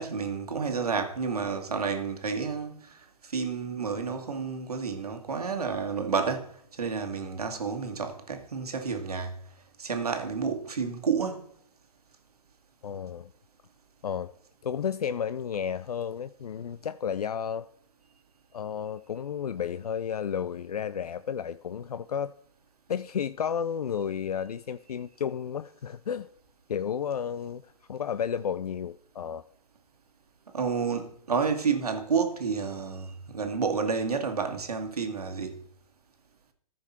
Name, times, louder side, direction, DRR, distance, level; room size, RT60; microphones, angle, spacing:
voice 1, 0.0-9.3 9.8-11.5 30.5-35.6, right 5 dB, 80° right, 1.7 m, -30 dB
voice 2, 12.8-13.3 14.0-14.3 14.6-17.7 18.5-22.3 22.9-26.3 26.7-29.4, left 8 dB, 80° left, 0.4 m, -32 dB
14.5 x 5.2 x 4.1 m
hypercardioid pair, 125°, 19 cm